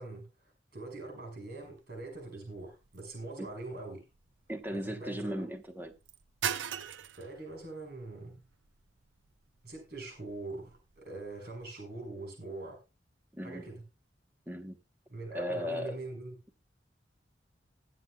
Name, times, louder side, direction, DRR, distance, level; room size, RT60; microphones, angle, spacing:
voice 1, 0.0-4.0 4.7-5.5 7.2-8.4 9.6-12.8 13.4-13.8 15.1-16.4, right 2 dB, 60° right, 5.5 m, -43 dB
sound 1, 1.6-11.7, right 9 dB, 85° right, 0.6 m, -44 dB
voice 2, 4.5-5.9 13.3-13.6 14.5-14.8 15.3-15.9, equal, 10° right, 1.0 m, -37 dB
20.5 x 7.8 x 2.3 m
head